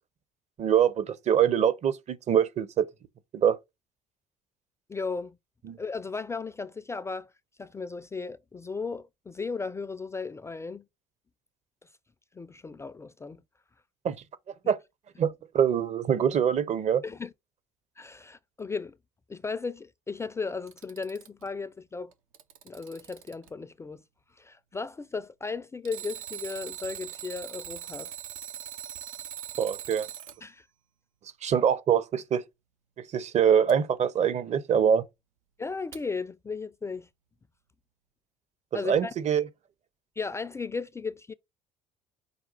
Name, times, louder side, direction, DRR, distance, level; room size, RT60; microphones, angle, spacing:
voice 1, 0.6-2.9 3.3-3.6 5.6-5.8 14.0-14.2 14.7-14.8 15.2-17.0 29.6-30.1 31.4-32.4 33.1-35.0 38.9-39.4, right 8 dB, 40° right, 0.6 m, -24 dB
voice 2, 4.9-5.4 5.8-7.3 7.6-10.8 12.3-13.4 17.0-17.3 18.0-18.9 19.3-22.1 22.6-24.0 24.4-28.1 30.4-30.7 35.6-37.1 38.7-39.1 40.2-41.3, left 4 dB, 15° left, 0.3 m, -35 dB
Alarm, 20.5-21.5 22.1-23.5 25.8-30.4 33.7-33.8 35.9-36.0, right 10 dB, 85° right, 0.6 m, -41 dB
5.1 x 2.3 x 3.8 m
hypercardioid pair, 60°, 17 cm